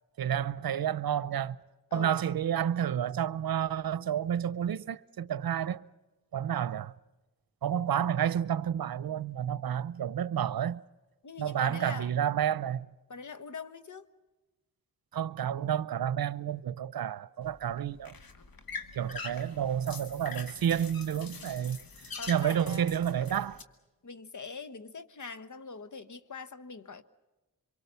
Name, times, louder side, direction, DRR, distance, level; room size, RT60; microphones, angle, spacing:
voice 1, 0.2-1.6 1.9-5.8 6.3-6.9 7.6-10.8 11.4-12.9 15.1-18.1 18.9-21.8 22.3-23.6, right 9 dB, 80° right, 0.7 m, -30 dB
voice 2, 11.2-12.1 13.1-14.1 22.2-22.9 24.0-27.0, left 5 dB, 55° left, 1.3 m, -43 dB
sound 1, 17.4-23.6, left 5 dB, 75° left, 2.0 m, -44 dB
26.0 x 23.5 x 6.9 m
cardioid pair, 50°, 35 cm